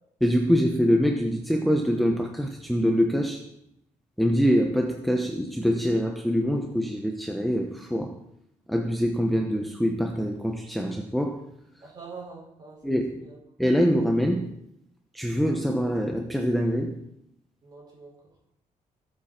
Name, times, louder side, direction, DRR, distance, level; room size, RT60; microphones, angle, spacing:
voice 1, 0.2-3.4 4.2-8.1 8.7-11.4 12.8-13.3 13.6-14.5 15.1-17.0, equal, ahead, 2 dB, 0.9 m, -24 dB
voice 2, 11.8-13.3 17.6-18.1, right 4 dB, 30° right, -2 dB, 5.3 m, -44 dB
22.5 x 7.6 x 4.4 m, 0.76 s
cardioid pair, 175°, 14 cm